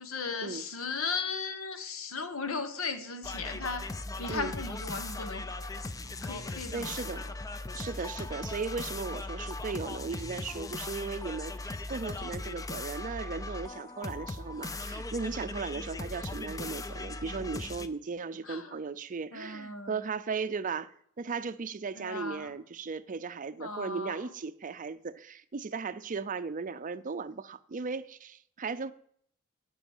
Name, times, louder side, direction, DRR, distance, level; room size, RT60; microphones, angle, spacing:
voice 1, 0.0-3.9 4.2-5.9 6.2-6.9 18.4-18.8 19.3-20.0 21.9-22.5 23.6-24.3, left 4 dB, 80° left, 1.2 m, -37 dB
sound 1, 3.2-17.9, left 2 dB, 15° left, 0.4 m, -38 dB
voice 2, 6.4-7.3 7.7-20.9 21.2-28.9, right 5 dB, 40° right, 0.5 m, -37 dB
10.0 x 6.2 x 7.1 m
head